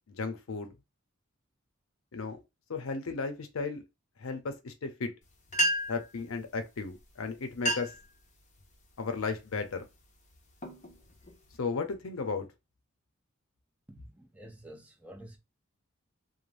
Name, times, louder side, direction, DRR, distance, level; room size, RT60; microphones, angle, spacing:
voice 1, 0.1-0.7 2.1-2.4 2.7-3.8 4.2-5.1 5.9-7.9 9.0-9.9 11.6-12.5, left 4 dB, 85° left, 0.6 m, -34 dB
sound 1, 5.2-5.3 5.5-6.1 7.0-7.1 7.5-8.1 8.6-8.9 9.5-9.8 10.3-11.6, right 1 dB, 35° left, 0.6 m, -32 dB
voice 2, 13.9-15.4, right 1 dB, 5° right, 0.5 m, -50 dB
3.2 x 2.0 x 2.5 m
head